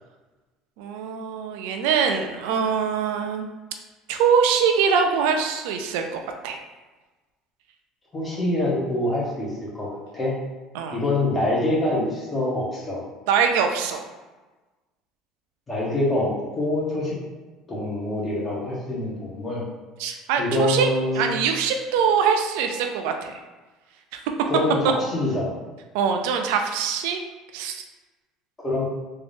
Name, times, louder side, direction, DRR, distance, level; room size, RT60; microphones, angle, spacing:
voice 1, 0.8-3.5 4.1-6.6 10.7-11.0 13.3-14.0 20.0-20.9 21.1-23.3 24.1-24.2 25.9-27.2 27.5-27.8, right 6 dB, 80° right, 4 dB, 0.4 m, -23 dB
voice 2, 8.1-9.9 10.1-10.4 10.9-13.0 15.7-17.2 17.7-19.6 20.4-21.3 24.5-25.5 28.6-28.8, left 1 dB, 20° left, -5 dB, 1.4 m, -25 dB
3.4 x 2.7 x 3.5 m, 1.2 s
supercardioid pair, 110°, 0 cm